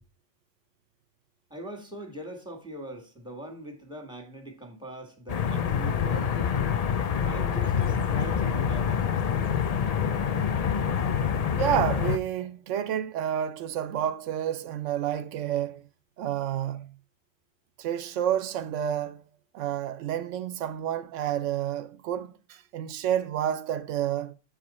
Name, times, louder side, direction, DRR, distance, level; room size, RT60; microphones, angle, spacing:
voice 1, 1.5-6.5 7.2-9.1, right 1 dB, 5° right, 1.6 m, -41 dB
sound 1, 5.3-12.2, left 7 dB, 50° left, 0.4 m, -26 dB
sound 2, 7.7-9.9 10.2-10.3, right 1 dB, 80° left, 2.6 m, -42 dB
voice 2, 11.6-15.8 16.2-16.9 17.8-19.2 19.5-24.3, right 10 dB, 85° right, 0.9 m, -29 dB
7.5 x 4.8 x 4.1 m
omnidirectional pair, 1.2 m